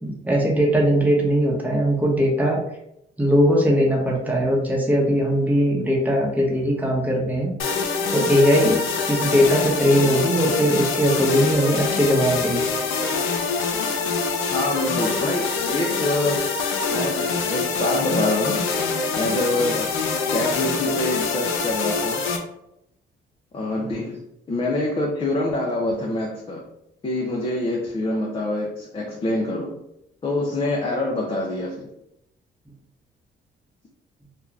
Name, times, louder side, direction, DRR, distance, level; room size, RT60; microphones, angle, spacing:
voice 1, 0.0-2.6 3.2-7.5 8.1-8.8 9.1-12.6, equal, 10° right, -3 dB, 0.9 m, -20 dB
sound 1, 7.6-22.4, left 4 dB, 85° left, 0.5 m, -25 dB
voice 2, 14.5-16.5 16.9-18.6 19.2-19.9 20.3-22.2 23.5-26.6 27.0-29.8 30.2-31.9, left 2 dB, 25° left, -1 dB, 0.5 m, -25 dB
2.5 x 2.2 x 3.2 m, 0.80 s
cardioid pair, 90°, 20 cm